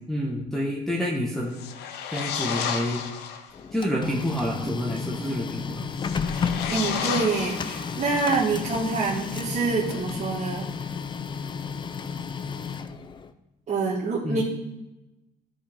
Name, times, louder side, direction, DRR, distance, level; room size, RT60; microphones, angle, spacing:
voice 1, 0.1-1.6 2.1-3.0 3.7-5.8 14.2-14.4, equal, ahead, -4 dB, 1.1 m, -28 dB
sound 1, 1.5-3.6 5.9-8.3, left 8 dB, 80° left, 0.8 m, -32 dB
Printer, 3.5-13.3, left 6 dB, 30° left, 0.5 m, -32 dB
voice 2, 6.7-10.7 13.7-14.4, right 4 dB, 45° right, -7 dB, 1.6 m, -26 dB
12.5 x 5.0 x 3.5 m, 0.97 s
cardioid pair, 110°, 17 cm